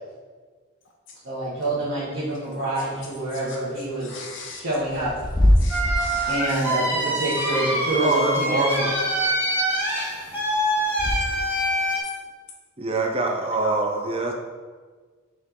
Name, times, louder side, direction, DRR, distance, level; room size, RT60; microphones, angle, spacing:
voice 1, 1.2-4.2 4.5-5.1 6.3-8.9, right 1 dB, 70° right, -11 dB, 1.6 m, -26 dB
Bird / Wind, 2.9-11.6, left 1 dB, 20° left, 0.6 m, -27 dB
voice 2, 4.0-4.6 5.6-6.8 7.2-7.5 8.1-8.2 13.4-14.1, left 3 dB, 60° left, 0 dB, 0.6 m, -39 dB
sound 1, 5.7-12.0, right 1 dB, 10° right, 1.3 m, -25 dB
voice 3, 8.0-8.9 12.8-14.3, right 3 dB, 25° right, 2 dB, 0.6 m, -24 dB
6.0 x 3.7 x 4.6 m, 1.5 s
head